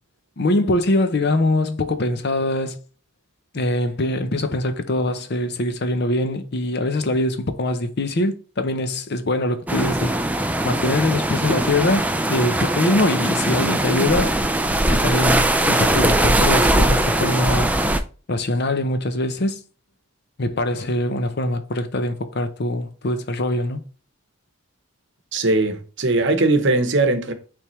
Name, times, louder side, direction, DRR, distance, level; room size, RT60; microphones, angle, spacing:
voice 1, 0.4-2.8 3.5-10.1 10.6-14.4 14.9-17.7 18.3-19.6 20.4-23.8, left 1 dB, 50° left, 0.7 m, -23 dB
sound 1, 9.7-18.0, right 1 dB, 5° right, 0.3 m, -20 dB
voice 2, 25.3-27.3, right 2 dB, 55° right, 0.9 m, -19 dB
8.7 x 3.5 x 3.1 m
head